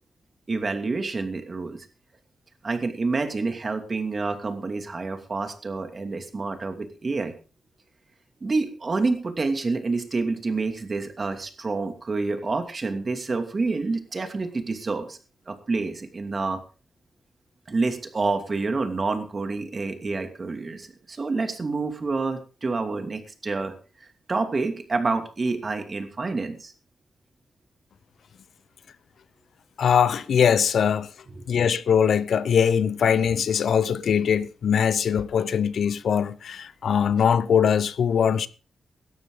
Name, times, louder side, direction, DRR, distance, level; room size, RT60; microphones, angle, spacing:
voice 1, 0.5-1.9 2.6-7.3 8.4-15.2 15.5-16.6 17.7-26.7 31.4-31.5, right 3 dB, 35° right, 2.6 m, -28 dB
voice 2, 29.8-31.1 31.5-38.5, left 7 dB, 70° left, 0.8 m, -21 dB
17.0 x 13.0 x 3.9 m
wide cardioid pair, 120°, 0 cm